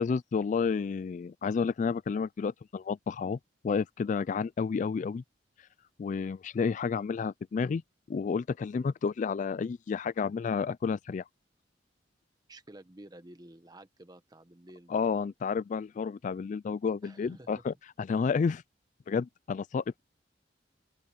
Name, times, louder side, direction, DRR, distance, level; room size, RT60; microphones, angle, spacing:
voice 1, 0.0-3.4 3.6-5.2 6.0-7.8 8.1-11.2 14.9-18.6 19.1-20.0, left 5 dB, 45° left, 0.3 m, -30 dB
voice 2, 12.5-15.3 17.0-17.6, right 1 dB, 25° right, 1.4 m, -52 dB
open air
head